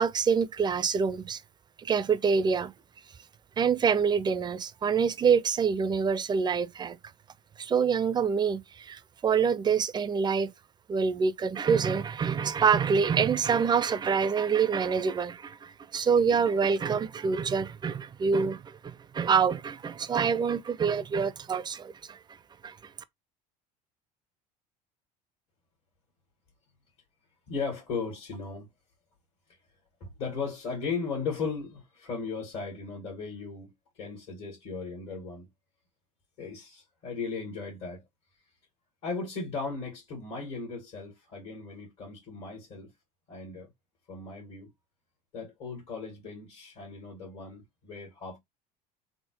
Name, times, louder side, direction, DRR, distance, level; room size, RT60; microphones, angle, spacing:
voice 1, 0.0-1.4 1.8-2.7 3.6-7.0 7.6-10.5 10.9-22.2 22.6-22.7, right 6 dB, 20° right, 0.4 m, -26 dB
voice 2, 27.5-28.7 30.0-35.5 36.4-38.0 39.0-42.9 43.3-43.7 44.1-44.7 45.3-48.4, left 4 dB, 65° left, 1.6 m, -37 dB
3.6 x 2.0 x 2.8 m
hypercardioid pair, 70°, 21 cm